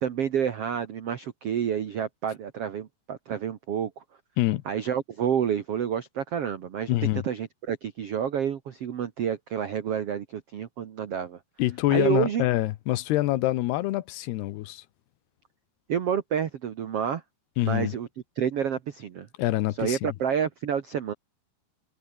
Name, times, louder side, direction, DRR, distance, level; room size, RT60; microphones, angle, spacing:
voice 1, 0.0-3.9 4.6-7.0 7.2-11.4 11.9-12.4 15.9-17.2 17.6-18.1 18.4-19.3 19.8-21.1, right 8 dB, 80° right, 1.3 m, -29 dB
voice 2, 6.9-7.2 11.6-14.8 17.6-18.0 19.4-20.1, left 16 dB, 75° left, 2.9 m, -26 dB
omnidirectional pair, 4.9 m